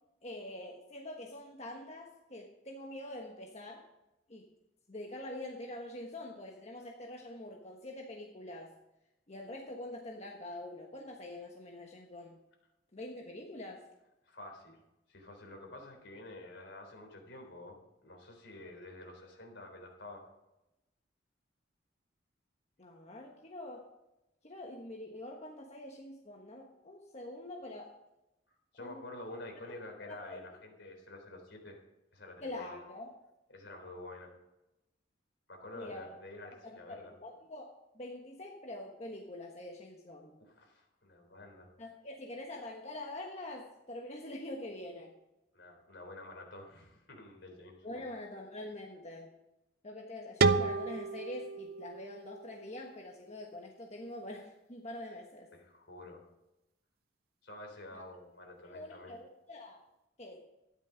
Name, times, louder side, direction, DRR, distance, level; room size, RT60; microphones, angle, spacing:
voice 1, 0.2-3.9 4.3-4.5 4.9-8.7 9.3-12.4 12.9-13.8 22.8-23.9 24.4-27.9 28.8-29.0 30.1-30.4 32.4-33.1 35.7-36.0 36.4-40.4 41.8-45.1 47.8-49.3 49.8-55.5 57.9-58.0 58.6-59.8 60.2-60.5, left 1 dB, 35° left, 0 dB, 1.3 m, -45 dB
voice 2, 14.2-14.8 15.1-20.3 28.7-31.8 32.1-32.8 33.5-34.3 35.5-37.1 40.4-41.7 45.5-48.1 55.5-56.2 57.4-59.1, left 2 dB, 70° left, 2 dB, 3.6 m, -49 dB
sound 1, 50.4-53.2, right 4 dB, 55° right, 0.6 m, -32 dB
13.0 x 11.0 x 5.1 m, 0.94 s
head